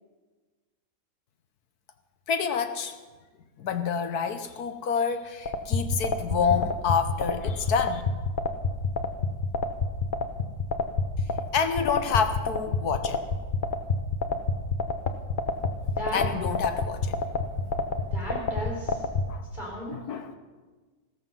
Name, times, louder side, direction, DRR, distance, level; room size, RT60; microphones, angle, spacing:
voice 1, 2.3-3.0 3.6-8.0 11.5-13.2 16.1-17.3 19.3-19.4 19.9-20.4, left 6 dB, 60° left, 9 dB, 1.3 m, -28 dB
sound 1, 5.5-19.2, left 4 dB, 40° left, 0.7 m, -27 dB
voice 2, 15.9-16.3 18.1-19.0 19.5-20.0, equal, 25° left, -3 dB, 4.8 m, -35 dB
15.0 x 14.0 x 5.6 m, 1.3 s
omnidirectional pair, 2.0 m